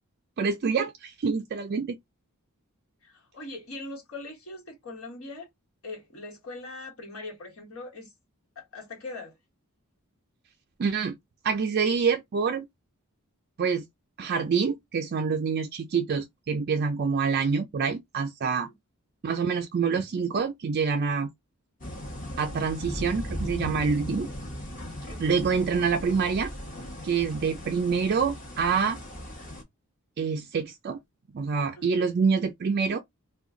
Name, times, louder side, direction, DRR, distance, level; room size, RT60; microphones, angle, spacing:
voice 1, 0.4-2.0 10.8-11.2 11.4-12.7 13.6-13.8 14.2-18.7 19.2-21.3 22.4-24.3 25.2-26.5 27.0-29.0 30.2-31.0 31.3-33.0, right 5 dB, 45° right, 0.4 m, -26 dB
voice 2, 3.0-5.5 5.8-8.1 8.5-9.4 18.6-18.7 31.7-32.1, left 2 dB, 70° left, 1.4 m, -41 dB
sound 1, 21.8-29.6, left 1 dB, 40° left, 1.0 m, -37 dB
2.4 x 2.2 x 3.6 m
head